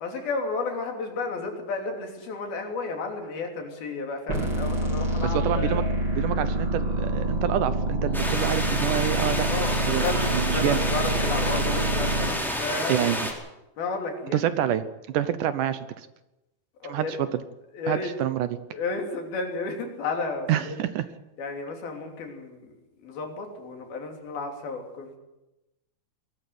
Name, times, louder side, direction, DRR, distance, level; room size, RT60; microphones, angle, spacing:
voice 1, 0.0-5.9 9.5-13.1 13.8-14.5 16.8-17.2 17.7-18.1 18.7-20.9 21.4-22.7 23.0-25.2, left 3 dB, 85° left, 3 dB, 5.1 m, -32 dB
sound 1, 4.3-12.3, right 1 dB, 35° right, 4.4 m, -27 dB
voice 2, 5.3-5.8 6.2-9.5 9.9-10.1 10.3-10.8 12.9-13.2 14.3-14.8 15.1-16.1 16.9-17.3 17.9-18.5 20.5-21.0, right 11 dB, 70° right, 12 dB, 2.2 m, -27 dB
sound 2, 8.1-13.3, equal, ahead, 4.0 m, -29 dB
21.5 x 13.5 x 9.5 m, 0.98 s
omnidirectional pair, 4.2 m